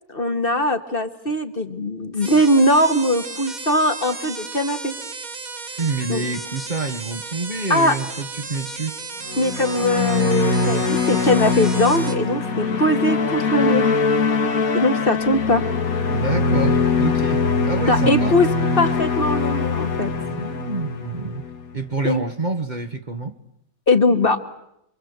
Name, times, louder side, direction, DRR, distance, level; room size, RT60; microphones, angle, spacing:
voice 1, 0.1-4.9 6.1-6.2 7.7-8.0 9.4-14.0 14.7-15.6 17.9-18.5 18.8-20.1 22.0-22.2 23.9-24.4, left 1 dB, 40° left, 1.9 m, -20 dB
sound 1, 2.2-12.2, right 4 dB, 70° right, 2.6 m, -34 dB
voice 2, 5.8-9.0 16.1-18.4 20.2-21.4 21.7-23.3, right 3 dB, 35° right, 1.4 m, -27 dB
sound 2, 9.3-21.7, left 4 dB, 75° left, 2.0 m, -22 dB
28.5 x 24.5 x 8.1 m
omnidirectional pair, 1.5 m